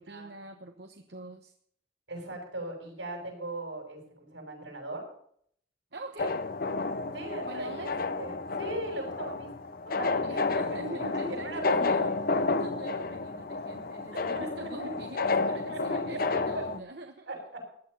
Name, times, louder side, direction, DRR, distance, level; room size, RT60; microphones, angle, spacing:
voice 1, 0.0-1.5 5.9-6.4 7.4-7.9 10.2-17.3, right 2 dB, 60° right, 5 dB, 1.1 m, -44 dB
voice 2, 2.1-5.0 7.1-7.9 8.2-9.5 9.9-11.9 14.2-14.9 15.5-16.2 16.5-16.6 17.3-17.6, right 1 dB, 80° right, 2 dB, 7.3 m, -39 dB
sound 1, 6.2-16.8, left 3 dB, 50° left, 0.8 m, -31 dB
15.5 x 11.0 x 5.6 m, 0.63 s
head